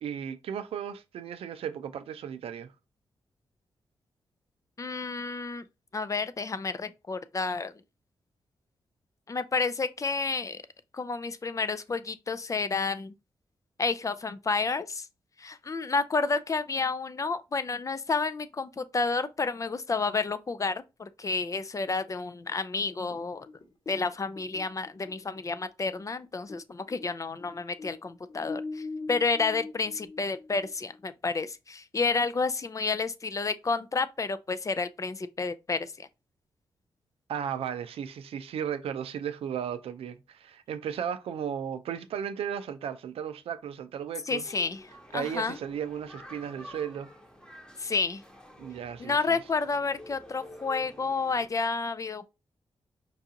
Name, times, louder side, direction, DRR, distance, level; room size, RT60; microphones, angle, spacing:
voice 1, 0.0-2.7 37.3-44.5 45.1-47.1 48.6-49.4, right 8 dB, 75° right, 0.4 m, -35 dB
voice 2, 4.8-5.6 5.9-7.7 9.3-10.6 10.9-13.1 13.8-15.1 15.4-23.5 23.9-36.1 44.3-44.8 45.1-45.6 47.8-48.2 49.0-52.3, left 4 dB, 35° left, 0.4 m, -30 dB
sound 1, 23.1-26.6 26.9-31.0, left 3 dB, 50° left, 1.2 m, -41 dB
sound 2, 44.4-51.5, equal, 5° left, 1.0 m, -49 dB
4.6 x 2.4 x 2.7 m
supercardioid pair, 50°, 10 cm